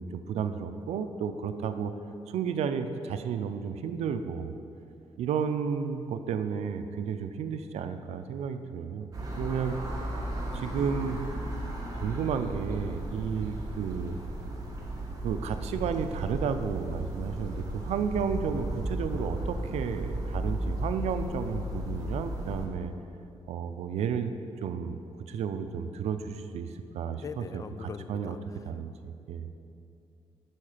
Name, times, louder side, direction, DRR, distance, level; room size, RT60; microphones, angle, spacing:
voice 1, 0.0-1.9 2.3-4.5 5.2-9.8 10.5-11.2 12.0-14.2 15.2-22.9 23.5-24.3 24.6-25.0 25.3-26.7 26.9-28.4 28.6-29.5, right 7 dB, 85° right, 9 dB, 0.5 m, -32 dB
sound 1, 9.1-22.7, right 1 dB, 35° right, 1.5 m, -35 dB
voice 2, 21.3-21.8 27.1-28.7, left 5 dB, 30° left, 11 dB, 0.3 m, -43 dB
8.5 x 6.4 x 5.0 m, 2.6 s
cardioid pair, 125°, 11 cm